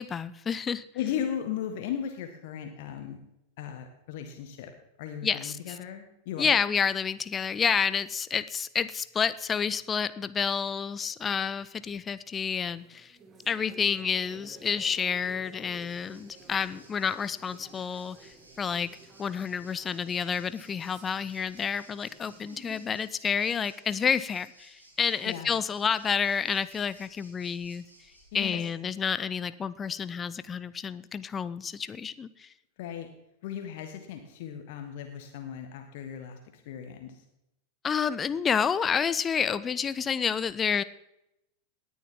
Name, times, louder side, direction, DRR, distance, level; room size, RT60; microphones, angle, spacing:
voice 1, 0.0-0.9 5.2-5.8 6.4-13.2 13.5-18.9 19.2-27.9 28.3-32.5 37.8-40.8, left 6 dB, 20° left, 16 dB, 0.5 m, -29 dB
voice 2, 0.9-3.2 3.6-4.7 5.0-6.7 25.2-25.5 28.3-28.6 32.8-33.1 33.4-37.2, left 9 dB, 50° left, 5 dB, 1.5 m, -36 dB
sound 1, 12.5-23.0, right 3 dB, 25° right, 2.0 m, -54 dB
Waves surf, 15.4-28.7, right 1 dB, 80° right, 4.0 m, -58 dB
18.5 x 10.0 x 3.7 m, 0.85 s
figure-of-eight pair, 90°, 0 cm